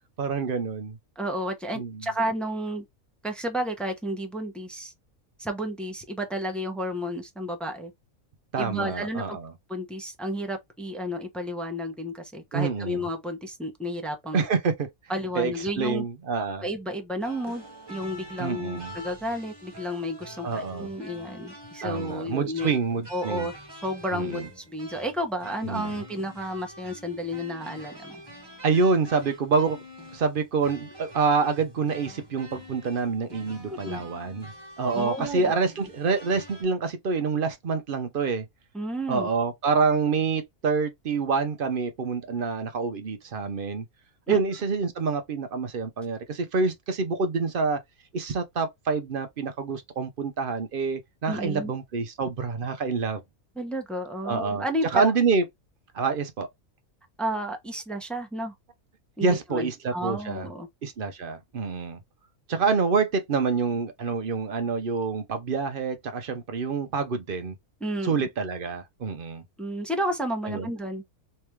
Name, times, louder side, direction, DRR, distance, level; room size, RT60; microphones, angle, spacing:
voice 1, 0.2-1.0 1.8-2.1 8.5-9.5 12.5-13.0 14.3-14.7 15.3-16.6 18.4-18.9 20.4-20.9 21.8-23.5 24.1-24.4 25.6-26.0 28.6-29.8 30.1-38.5 39.1-43.8 44.3-47.8 48.1-53.2 54.2-54.6 54.9-55.4 55.9-56.5 59.2-60.5 60.8-62.0 62.5-67.5 68.0-69.4 70.5-70.7, right 4 dB, 50° right, 0.7 m, -27 dB
voice 2, 1.2-2.8 3.2-4.9 5.4-7.9 8.6-9.4 9.7-14.4 15.1-16.0 16.6-22.7 23.1-28.2 33.7-34.0 34.9-35.5 38.7-39.3 44.3-44.4 51.3-51.7 53.6-55.1 57.2-58.5 59.2-60.7 67.8-68.3 69.6-71.0, equal, ahead, 0.4 m, -32 dB
sound 1, 17.2-36.6, equal, 15° right, 1.3 m, -46 dB
3.3 x 3.3 x 3.1 m
omnidirectional pair, 1.5 m